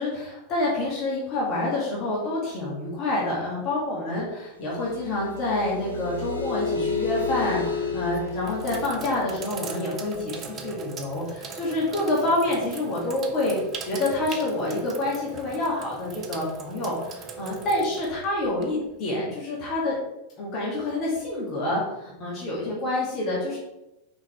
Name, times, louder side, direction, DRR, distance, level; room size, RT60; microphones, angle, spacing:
voice 1, 0.0-13.6 13.8-20.0 20.4-23.6, left 2 dB, 35° left, -5 dB, 2.2 m, -27 dB
sound 1, 4.6-10.1, left 4 dB, 80° left, 1.1 m, -31 dB
Sink (filling or washing), 8.0-18.9, right 4 dB, 25° right, 0.8 m, -39 dB
6.0 x 4.4 x 4.4 m, 0.93 s
figure-of-eight pair, 90°, 0 cm